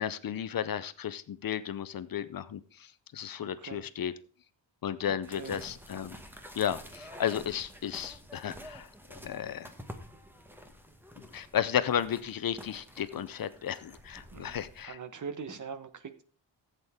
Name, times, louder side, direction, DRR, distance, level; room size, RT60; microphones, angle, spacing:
voice 1, 0.0-4.1 4.8-6.2 6.6-9.7 11.3-15.0, left 9 dB, 50° left, 14 dB, 0.6 m, -34 dB
voice 2, 3.4-3.8 5.1-5.6 14.3-14.6 14.8-16.2, right 6 dB, 40° right, 11 dB, 1.0 m, -42 dB
sound 1, 5.2-14.8, equal, 5° right, 1.1 m, -49 dB
15.5 x 8.1 x 3.6 m, 0.41 s
wide cardioid pair, 160°, 44 cm